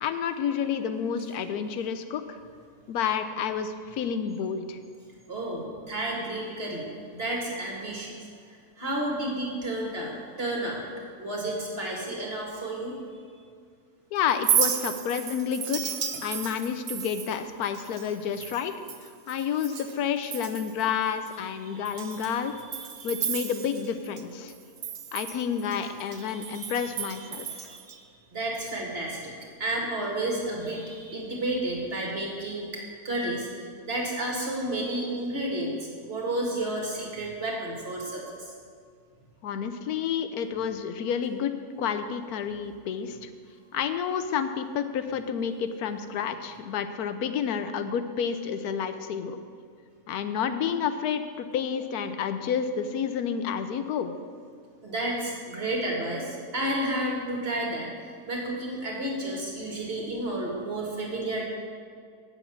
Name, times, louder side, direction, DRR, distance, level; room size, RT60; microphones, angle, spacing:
voice 1, 0.0-2.4 2.9-4.8 14.1-18.7 19.3-22.5 23.0-24.5 25.1-27.7 39.4-43.3 43.7-49.4 50.1-54.1, left 7 dB, 80° left, 10 dB, 1.1 m, -30 dB
voice 2, 5.3-8.1 8.5-10.8 11.2-13.0 16.3-16.4 21.6-22.3 22.7-23.1 26.3-28.0 28.3-29.3 29.6-32.7 33.0-35.7 36.0-38.5 54.8-61.5, right 1 dB, 40° right, -2 dB, 2.1 m, -32 dB
Chink clink, 14.3-20.0 20.2-20.8 21.3-21.4 21.8-24.2 24.5-27.9, right 8 dB, 55° right, 0.7 m, -33 dB
8.3 x 6.9 x 7.2 m, 2.2 s
omnidirectional pair, 1.6 m